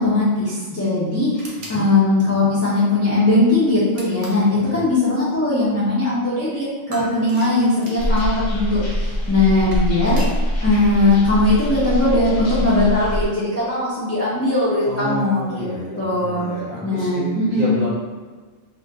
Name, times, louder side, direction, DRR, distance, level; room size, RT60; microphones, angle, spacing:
voice 1, 0.0-9.0 9.3-10.2 10.6-15.6 16.0-16.5 16.8-17.8, left 2 dB, 20° left, -10 dB, 0.5 m, -19 dB
sound 1, 1.4-1.8 3.9-4.5 6.9-8.3 9.4-10.4, right 1 dB, 65° right, 1.0 m, -37 dB
voice 2, 1.5-1.9 4.7-4.8 14.8-17.9, left 2 dB, 35° right, -9 dB, 1.0 m, -29 dB
sound 2, 8.0-13.3, equal, 55° left, 0.9 m, -24 dB
2.5 x 2.4 x 3.5 m, 1.4 s
omnidirectional pair, 1.3 m